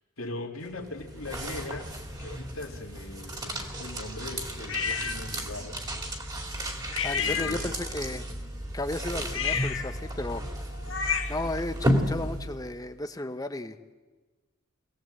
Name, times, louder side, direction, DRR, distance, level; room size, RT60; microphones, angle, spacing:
voice 1, 0.2-1.9 2.2-5.9 7.1-7.8, left 2 dB, 80° left, 2 dB, 2.6 m, -39 dB
sound 1, 0.6-12.8, equal, 20° right, 2.4 m, -33 dB
sound 2, 4.7-5.2 6.9-8.0 9.3-11.5, left 7 dB, 60° left, 1.6 m, -31 dB
voice 2, 7.0-8.2 8.7-10.4 11.3-11.8 12.1-13.7, left 1 dB, 15° left, 9 dB, 1.0 m, -34 dB
25.5 x 18.5 x 7.9 m, 1.3 s
head